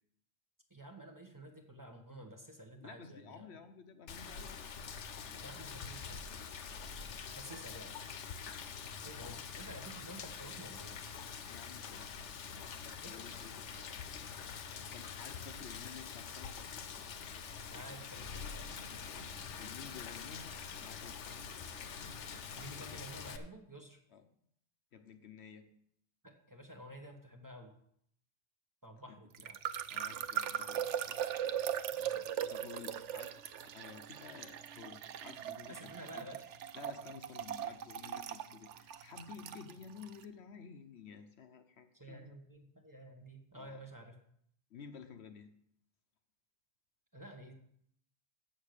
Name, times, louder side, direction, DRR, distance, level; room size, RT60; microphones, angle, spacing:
voice 1, 0.7-3.5 5.3-6.4 7.3-7.9 9.0-11.0 13.0-13.2 17.7-18.7 22.6-24.0 26.2-27.7 28.8-29.6 31.9-32.3 35.4-36.4 41.9-44.2 47.1-47.5, right 1 dB, 15° right, 3 dB, 1.2 m, -51 dB
voice 2, 2.8-4.5 7.7-7.8 9.2-9.4 11.4-12.8 13.1-13.6 14.6-16.8 19.6-21.2 24.1-24.2 24.9-25.7 29.1-29.2 29.9-31.2 32.5-33.4 33.6-36.3 36.7-42.4 43.5-43.8 44.7-45.5, left 6 dB, 70° left, 9 dB, 1.0 m, -52 dB
Rain, 4.1-23.4, left 6 dB, 90° left, 1.1 m, -45 dB
sound 1, 29.3-40.2, right 10 dB, 90° right, 1.0 m, -39 dB
7.9 x 7.2 x 6.6 m, 0.70 s
omnidirectional pair, 1.2 m